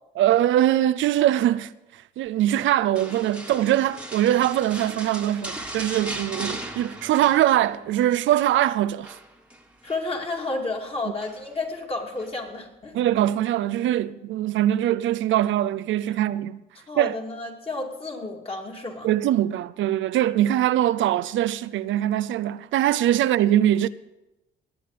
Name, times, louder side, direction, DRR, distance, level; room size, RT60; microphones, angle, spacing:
voice 1, 0.2-1.7 2.2-9.2 12.9-16.6 17.0-17.2 19.0-23.9, right 12 dB, 75° right, 0.5 m, -22 dB
sound 1, 3.0-8.0 8.2-8.6 9.0-10.1 11.2-11.7 12.2-12.3, right 1 dB, 5° right, 1.6 m, -37 dB
voice 2, 9.8-13.0 16.9-19.1, left 3 dB, 30° left, 2.7 m, -31 dB
19.5 x 8.6 x 5.0 m
cardioid pair, 90°, 20 cm